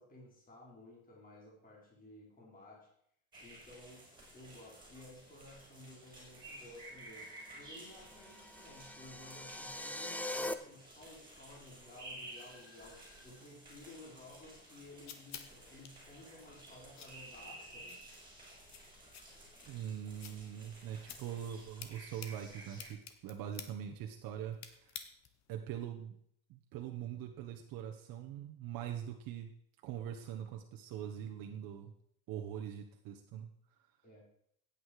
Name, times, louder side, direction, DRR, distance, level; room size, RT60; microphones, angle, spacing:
voice 1, 0.0-2.9 3.4-4.1 4.3-18.0 34.0-34.2, left 1 dB, 20° left, -2 dB, 3.9 m, -55 dB
sound 1, 3.3-22.9, right 1 dB, 10° right, 4.5 m, -54 dB
sound 2, 8.0-10.5, left 1 dB, 5° left, 0.5 m, -42 dB
sound 3, 14.5-25.5, left 8 dB, 45° left, 1.4 m, -54 dB
voice 2, 19.7-25.0 25.5-26.2 26.5-29.5 29.8-31.9 32.3-33.5, right 9 dB, 60° right, 3 dB, 1.4 m, -43 dB
16.0 x 8.8 x 4.9 m, 0.70 s
cardioid pair, 150°, 38 cm